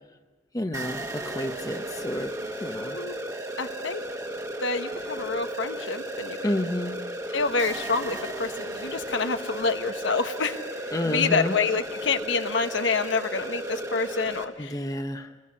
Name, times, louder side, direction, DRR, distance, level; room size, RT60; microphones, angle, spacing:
voice 1, 0.5-2.3 2.6-3.0 6.4-7.0 10.9-11.5 14.6-15.3, left 1 dB, 20° left, 6 dB, 0.9 m, -30 dB
sound 1, 0.7-14.4, right 1 dB, 15° right, 1.5 m, -34 dB
voice 2, 2.8-3.1 3.6-4.0 4.6-6.6 7.3-10.6 11.0-14.8, left 4 dB, 75° left, 7 dB, 1.3 m, -27 dB
28.0 x 21.0 x 6.4 m, 1.2 s
head